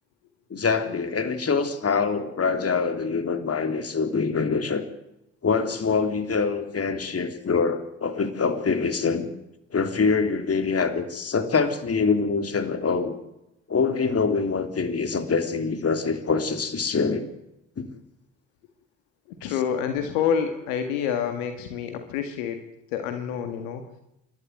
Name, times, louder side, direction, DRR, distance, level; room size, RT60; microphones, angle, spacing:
voice 1, 0.5-4.8 5.4-9.3 9.7-13.1 13.7-17.2 17.8-17.9, left 5 dB, 40° left, 8 dB, 3.5 m, -24 dB
voice 2, 19.4-22.6 22.9-23.8, left 8 dB, 75° left, 7 dB, 1.9 m, -27 dB
28.0 x 12.0 x 9.4 m, 0.86 s
hypercardioid pair, 50°, 38 cm